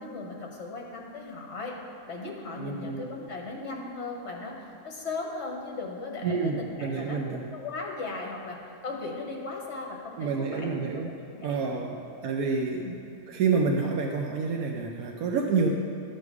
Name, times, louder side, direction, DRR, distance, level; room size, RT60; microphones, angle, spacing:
voice 1, 0.0-1.7 2.1-8.6 8.8-11.9 12.8-12.9, left 3 dB, 50° left, 0 dB, 1.7 m, -37 dB
voice 2, 2.6-3.1 6.2-7.4 10.2-11.1 11.4-12.8 13.3-15.7, right 4 dB, 75° right, 0 dB, 1.2 m, -28 dB
12.5 x 6.6 x 4.8 m, 2.6 s
omnidirectional pair, 1.6 m